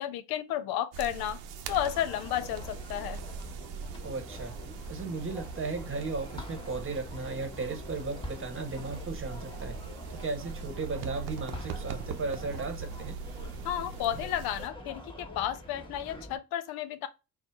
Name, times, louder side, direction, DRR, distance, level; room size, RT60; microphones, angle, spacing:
voice 1, 0.0-1.4 1.7-3.2 13.6-17.1, left 11 dB, 80° left, 0.6 m, -32 dB
sound 1, 0.9-14.7, right 6 dB, 85° right, 0.7 m, -42 dB
sound 2, 1.6-16.4, equal, 15° left, 1.3 m, -45 dB
voice 2, 4.0-4.6 4.9-9.8 10.1-13.2, right 3 dB, 35° right, 1.1 m, -36 dB
4.3 x 2.1 x 4.4 m
cardioid pair, 85°, 37 cm